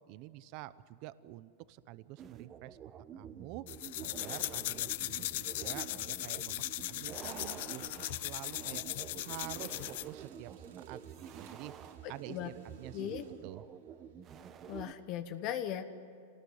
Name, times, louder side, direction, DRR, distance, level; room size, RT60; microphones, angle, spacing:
voice 1, 0.1-2.8 3.2-3.6 4.0-8.9 9.2-11.0 11.3-11.7 12.1-13.2 13.4-13.6, right 16 dB, 45° right, 16 dB, 0.7 m, -48 dB
sound 1, 2.2-14.9, right 8 dB, 30° right, 1.1 m, -49 dB
Printer, 3.2-4.5 4.8-14.3, right 9 dB, 75° right, 3.3 m, -59 dB
sound 2, 3.7-10.1, left 17 dB, 65° left, 0.5 m, -38 dB
voice 2, 12.9-13.2 14.7-15.8, left 11 dB, 40° left, 9 dB, 1.2 m, -37 dB
26.5 x 19.0 x 9.5 m, 2.5 s
supercardioid pair, 150°, 0 cm